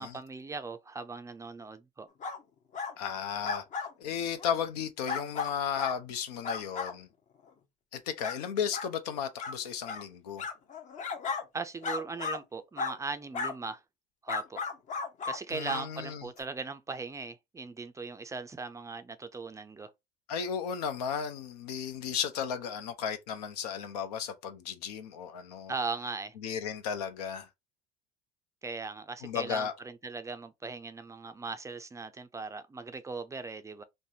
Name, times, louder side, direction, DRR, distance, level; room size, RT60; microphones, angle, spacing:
voice 1, 0.0-2.1 11.5-13.8 14.2-14.6 15.2-19.9 25.7-26.3 28.6-33.8, right 4 dB, 15° right, 0.4 m, -39 dB
sound 1, 2.2-2.4 2.7-2.9 3.4-3.9 4.4-4.5 5.1-6.0 6.4-6.9 7.5-7.6 8.2-8.4 8.7-8.9 9.4-9.5 9.8-10.0 10.4-11.4 11.8-12.4 12.8-13.0 13.3-13.6 14.3-15.4 15.6-15.8 16.4-16.5, left 5 dB, 40° left, 0.6 m, -35 dB
voice 2, 3.0-3.6 4.0-7.1 7.9-10.5 15.5-16.3 20.3-25.7 26.4-27.5 29.2-29.7, left 7 dB, 85° left, 0.6 m, -34 dB
3.3 x 2.0 x 2.7 m
hypercardioid pair, 80°, 20 cm